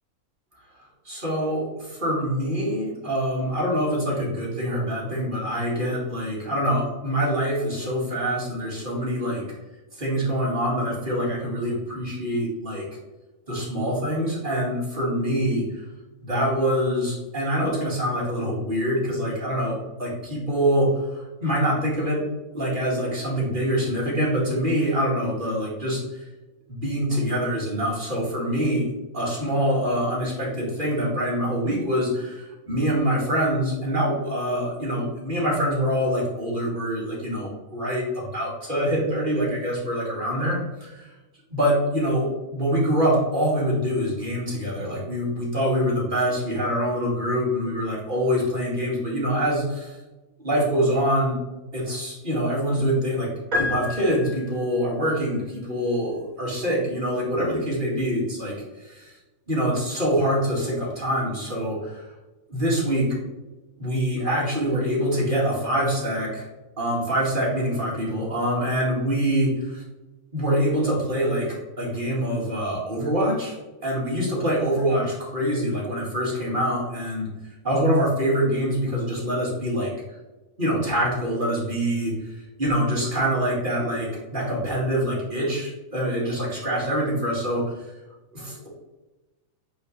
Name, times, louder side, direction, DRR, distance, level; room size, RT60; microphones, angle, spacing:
voice 1, 1.1-9.4 10.0-12.8 13.5-15.6 16.2-22.2 22.5-26.3 26.7-28.9 29.1-41.1 41.5-50.0 50.4-51.4 51.7-53.3 53.5-59.2 59.5-62.1 62.5-63.2 63.8-66.5 66.8-69.8 70.3-73.6 73.8-77.3 77.6-79.9 80.6-87.7 88.3-88.7, equal, 30° right, -5 dB, 2.2 m, -25 dB
sound 1, 53.5-54.8, left 3 dB, 65° right, 2.0 m, -28 dB
8.5 x 4.5 x 3.2 m, 1.1 s
omnidirectional pair, 1.6 m